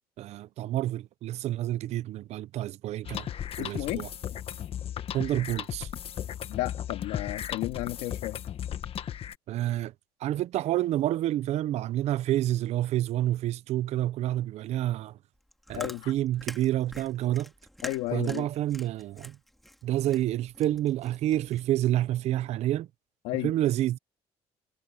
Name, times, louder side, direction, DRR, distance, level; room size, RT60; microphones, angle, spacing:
voice 1, 0.2-3.3 3.6-4.1 5.1-5.9 9.5-9.9 10.2-15.2 15.7-17.5 18.1-19.4 19.8-22.9 23.4-24.0, right 13 dB, 70° right, 0.8 m, -28 dB
sound 1, 3.0-9.3, left 10 dB, 55° left, 1.6 m, -36 dB
voice 2, 3.6-4.0 6.5-8.4 15.8-16.1 17.8-18.5 23.2-23.5, left 18 dB, 90° left, 2.3 m, -33 dB
Chewing mastication, 15.3-21.8, equal, ahead, 3.3 m, -45 dB
supercardioid pair, 85°, 12 cm